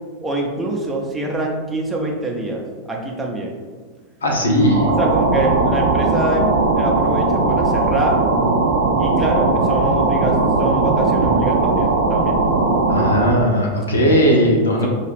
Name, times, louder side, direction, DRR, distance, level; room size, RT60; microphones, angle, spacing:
voice 1, 0.2-3.5 4.8-6.5 6.8-8.2 9.0-12.4, right 2 dB, 10° right, -1 dB, 0.6 m, -25 dB
voice 2, 4.2-4.9 12.9-14.9, equal, 70° left, 0 dB, 0.7 m, -17 dB
sound 1, 4.6-13.4, right 3 dB, 55° right, 0.5 m, -18 dB
4.5 x 2.4 x 3.3 m, 1.5 s
figure-of-eight pair, 90°, 0 cm